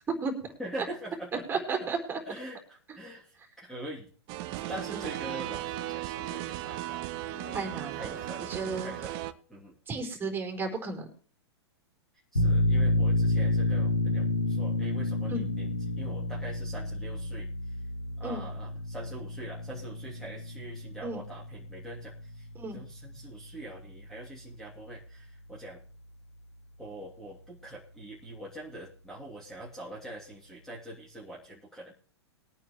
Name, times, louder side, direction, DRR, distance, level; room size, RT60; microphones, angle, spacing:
voice 1, 0.6-1.9 2.3-4.1 4.7-9.8 12.3-17.8 18.2-22.5 22.7-25.8 26.8-31.9, right 1 dB, 5° left, -4 dB, 2.9 m, -44 dB
voice 2, 1.5-2.2 4.9-5.0 7.5-8.2 8.5-8.9 9.9-11.1 15.3-15.5 18.2-18.4 21.0-21.2 22.6-22.8, right 4 dB, 15° right, 2 dB, 4.0 m, -33 dB
sound 1, 4.3-9.3, right 14 dB, 35° right, 1.0 m, -36 dB
sound 2, 12.4-23.7, left 2 dB, 85° left, 2.4 m, -30 dB
21.5 x 9.1 x 3.2 m, 0.42 s
figure-of-eight pair, 105°, 14 cm